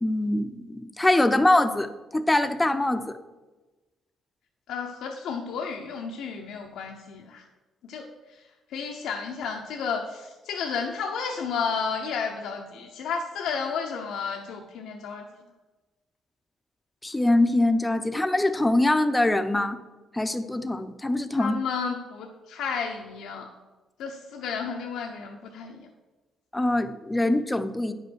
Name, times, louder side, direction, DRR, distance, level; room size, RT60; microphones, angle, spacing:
voice 1, 0.0-3.2 17.0-19.8 20.1-21.5 26.5-27.9, left 1 dB, 10° left, 10 dB, 0.7 m, -23 dB
voice 2, 4.7-7.4 7.8-15.3 21.3-23.5 24.0-25.9, left 5 dB, 85° left, 1 dB, 0.8 m, -32 dB
9.5 x 5.4 x 6.3 m, 1.2 s
cardioid pair, 90°, 0 cm